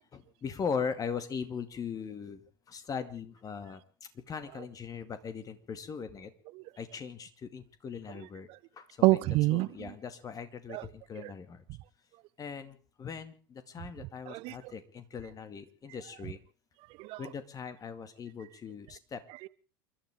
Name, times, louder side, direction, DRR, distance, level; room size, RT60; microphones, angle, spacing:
voice 1, 0.1-2.4 2.7-3.8 4.3-6.3 6.8-8.5 8.8-8.9 9.5-11.6 12.4-16.4 17.2-19.2, left 6 dB, 30° left, 2.3 m, -39 dB
voice 2, 9.0-9.9 10.7-10.9 11.1-11.3 14.3-14.7 16.2-16.3 17.0-17.3 19.3-19.5, right 20 dB, 50° right, 0.8 m, -29 dB
28.5 x 12.5 x 3.7 m
figure-of-eight pair, 80°, 12 cm